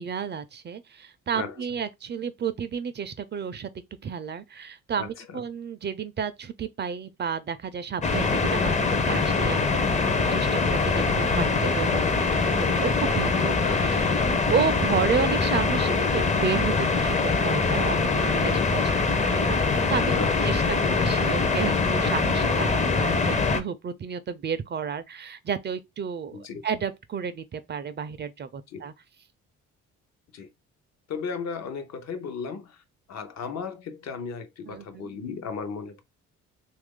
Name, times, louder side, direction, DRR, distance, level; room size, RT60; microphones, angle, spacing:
voice 1, 0.0-3.7 4.0-9.7 9.9-14.1 14.5-19.6 19.9-20.1 20.4-28.9 34.7-35.0, right 7 dB, 35° right, 0.4 m, -32 dB
voice 2, 1.3-1.7 5.0-5.4 13.6-14.1 20.1-20.6 26.3-26.6 28.7-28.9 30.3-30.5 31.1-36.0, left 5 dB, 60° left, 0.7 m, -36 dB
sound 1, 8.0-23.6, left 4 dB, 25° left, 0.5 m, -23 dB
3.0 x 2.5 x 3.6 m
cardioid pair, 90°, 30 cm